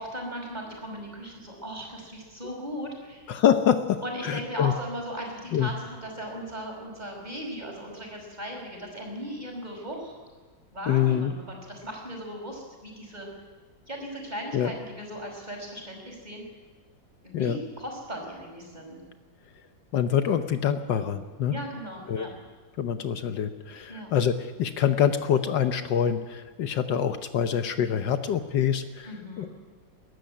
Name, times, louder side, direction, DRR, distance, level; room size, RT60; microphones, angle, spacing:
voice 1, 0.0-3.3 4.0-10.2 10.7-13.3 13.9-16.4 17.2-19.0 21.5-22.3 23.9-24.1 29.0-29.5, equal, 20° right, 1 dB, 5.6 m, -37 dB
voice 2, 3.3-4.7 5.5-5.7 10.9-11.3 14.5-14.7 17.3-17.6 19.9-21.5 22.1-22.3 22.8-29.1 29.4-29.5, left 9 dB, 75° left, 9 dB, 1.5 m, -25 dB
22.0 x 13.5 x 9.8 m, 1.4 s
omnidirectional pair, 2.0 m